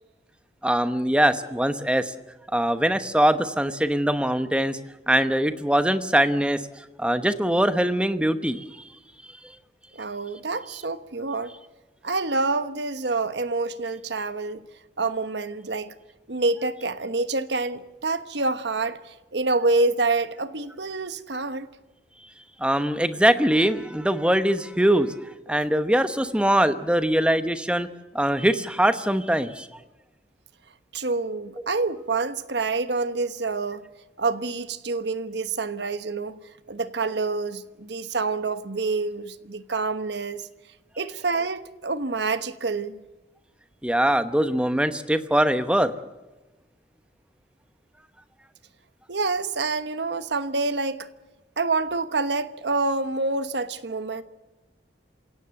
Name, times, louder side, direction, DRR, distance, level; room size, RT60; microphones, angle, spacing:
voice 1, 0.6-2.1 2.5-4.8 5.1-8.6 22.6-27.9 28.1-29.7 43.8-45.9, right 1 dB, 5° right, 1.0 m, -22 dB
voice 2, 9.9-11.5 12.0-14.6 15.0-15.9 16.3-21.7 25.5-25.6 30.9-33.9 34.2-40.5 41.0-43.0 49.1-51.1 51.6-54.2, right 3 dB, 75° right, 1.2 m, -27 dB
27.5 x 17.0 x 7.7 m
head